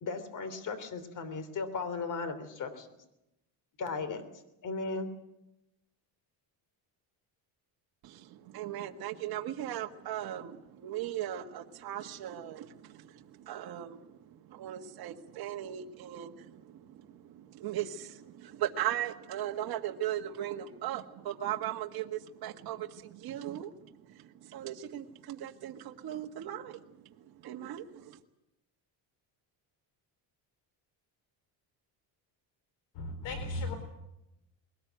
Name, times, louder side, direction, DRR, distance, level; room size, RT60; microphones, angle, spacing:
voice 1, 0.0-2.9 3.8-4.2 4.6-5.1, left 4 dB, 45° left, 12 dB, 3.3 m, -36 dB
voice 2, 8.0-14.2 14.5-26.8 27.4-28.2, right 12 dB, 55° right, 4 dB, 1.7 m, -38 dB
voice 3, 32.9-33.8, left 2 dB, 80° left, 7 dB, 4.3 m, -35 dB
21.5 x 19.0 x 9.3 m, 0.88 s
cardioid pair, 145°, 44 cm